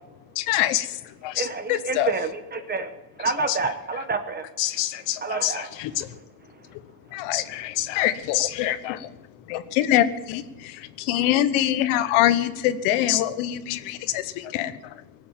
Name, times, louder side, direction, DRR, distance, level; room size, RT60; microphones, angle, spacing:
voice 1, 0.5-1.0 1.7-2.1 5.8-6.2 6.7-6.8 7.1-7.5 7.9-9.1 9.5-14.8, left 12 dB, 80° left, 12 dB, 1.2 m, -24 dB
voice 2, 1.3-2.9 3.2-4.4 5.2-5.7, right 4 dB, 20° right, 9 dB, 1.1 m, -28 dB
voice 3, 4.6-5.6 7.3-8.1 8.4-9.0 13.1-13.2, left 15 dB, 60° left, 14 dB, 0.7 m, -27 dB
19.5 x 8.4 x 7.3 m, 1.1 s
cardioid pair, 160°, 49 cm